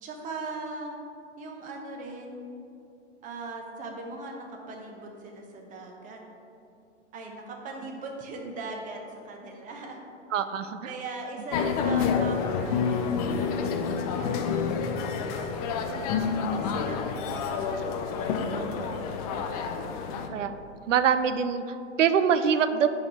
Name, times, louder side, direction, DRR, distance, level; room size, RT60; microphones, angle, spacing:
voice 1, 0.0-1.0 1.4-2.5 3.2-6.2 7.1-10.0 10.8-17.7 20.3-20.4, right 3 dB, 20° right, 2 dB, 0.8 m, -40 dB
voice 2, 10.3-10.9 18.5-19.1 20.3-20.5 20.9-22.9, right 7 dB, 80° right, 11 dB, 0.6 m, -25 dB
sound 1, 11.5-20.3, left 6 dB, 30° left, 0.5 m, -28 dB
5.1 x 4.9 x 5.4 m, 2.7 s
hypercardioid pair, 125°, 37 cm